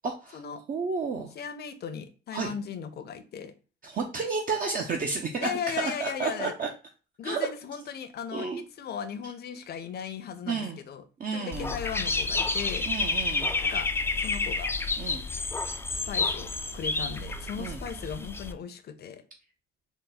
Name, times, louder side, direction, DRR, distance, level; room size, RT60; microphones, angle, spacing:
voice 1, 0.0-0.4 0.7-1.3 2.3-2.5 3.8-5.5 5.8-6.7 7.2-7.5 8.3-8.6 10.5-10.8 11.2-11.7 12.9-13.5 15.0-15.3 17.6-17.8, right 4 dB, 45° right, 2 dB, 0.7 m, -31 dB
voice 2, 1.3-3.5 5.4-6.5 7.2-11.0 11.3-12.9 13.6-13.9 14.2-14.7 15.9-19.2, left 7 dB, 55° left, 9 dB, 0.6 m, -37 dB
Dog / Bird, 11.5-18.5, left 3 dB, 10° left, 0.3 m, -30 dB
4.0 x 2.1 x 3.9 m, 0.34 s
cardioid pair, 90°, 20 cm